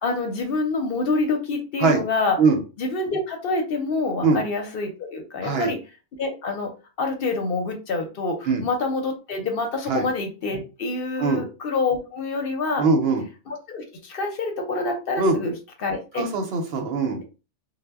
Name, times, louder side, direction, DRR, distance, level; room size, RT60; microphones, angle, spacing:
voice 1, 0.0-2.4 2.8-5.8 6.2-6.7 7.0-12.8 13.5-15.5 15.8-16.2, left 3 dB, 60° left, 3 dB, 0.7 m, -26 dB
voice 2, 5.4-5.7 8.4-8.7 9.9-10.1 11.2-11.4 12.8-13.2 15.2-15.4 16.1-17.2, right 4 dB, 65° right, 4 dB, 0.8 m, -21 dB
2.0 x 2.0 x 3.4 m, 0.32 s
omnidirectional pair, 1.2 m